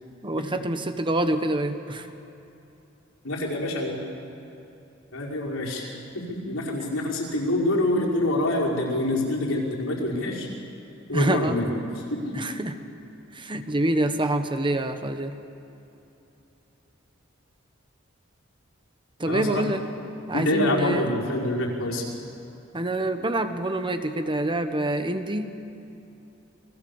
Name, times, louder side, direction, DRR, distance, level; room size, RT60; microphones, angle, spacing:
voice 1, 0.2-2.1 6.8-6.9 11.1-11.6 12.3-12.8 13.3-15.3 19.2-19.8 20.3-21.2 22.7-25.5, right 1 dB, 25° right, 8 dB, 1.2 m, -26 dB
voice 2, 3.2-4.0 5.1-5.9 6.1-10.5 11.1-11.7 12.1-12.4 19.3-19.6 20.3-22.0, left 1 dB, 85° left, -3 dB, 5.5 m, -26 dB
29.0 x 20.5 x 7.3 m, 2.9 s
head